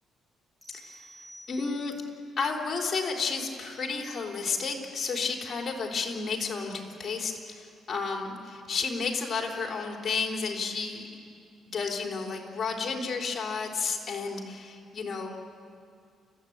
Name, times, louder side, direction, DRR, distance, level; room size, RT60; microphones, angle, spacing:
sound 1, 0.6-2.1, right 1 dB, 10° right, 6.2 m, -51 dB
voice 1, 0.7-1.1 1.5-1.9 2.4-11.0 11.7-15.4, left 4 dB, 40° left, 1 dB, 3.8 m, -32 dB
30.0 x 15.0 x 8.8 m, 2.3 s
cardioid pair, 120°, 0 cm